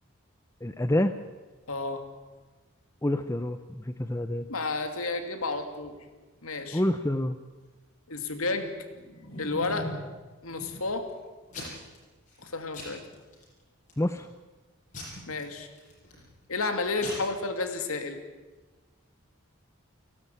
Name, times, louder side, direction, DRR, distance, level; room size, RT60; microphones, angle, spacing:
voice 1, 0.6-1.1 3.0-4.5 6.7-7.4 14.0-14.3, left 1 dB, 15° left, 9 dB, 0.6 m, -27 dB
voice 2, 1.7-2.0 4.5-5.9 6.4-6.8 8.1-8.7 9.4-9.9 10.4-11.1 12.4-13.0 15.3-15.7 16.5-18.2, left 3 dB, 80° left, 7 dB, 2.6 m, -31 dB
Packing tape duct tape / Tearing, 8.7-10.1 10.6-11.1 11.5-12.0 12.3-12.5 12.7-13.4 13.9-14.3 14.9-16.2 16.7-16.8 17.0-17.1, left 1 dB, 35° left, 7.8 m, -40 dB
30.0 x 12.5 x 9.2 m, 1.3 s
head